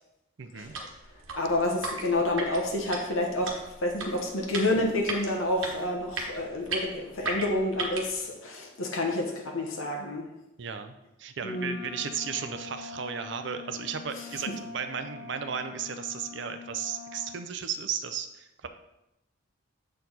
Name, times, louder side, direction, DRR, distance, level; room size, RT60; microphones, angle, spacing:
voice 1, 0.4-0.7 10.6-10.9 11.2-18.7, right 7 dB, 55° right, 9 dB, 0.5 m, -35 dB
sound 1, 0.6-8.2, right 3 dB, 75° right, 1.3 m, -37 dB
voice 2, 1.4-10.3 11.4-11.8, left 1 dB, 85° left, 0 dB, 1.2 m, -29 dB
Wind instrument woodwind instrument, 11.5-17.5, left 5 dB, 45° left, 0.6 m, -44 dB
7.7 x 4.5 x 4.0 m, 0.89 s
head